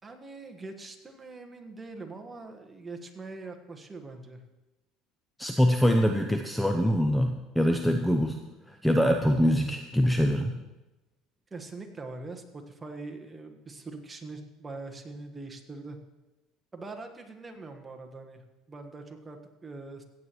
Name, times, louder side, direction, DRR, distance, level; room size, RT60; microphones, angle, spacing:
voice 1, 0.0-4.4 11.5-16.0 16.7-18.4 18.7-20.0, right 3 dB, 20° right, 5 dB, 1.4 m, -43 dB
voice 2, 5.4-8.4 8.7-10.6, equal, 5° left, 5 dB, 0.7 m, -24 dB
16.5 x 8.4 x 3.1 m, 1.0 s
supercardioid pair, 95°, 0 cm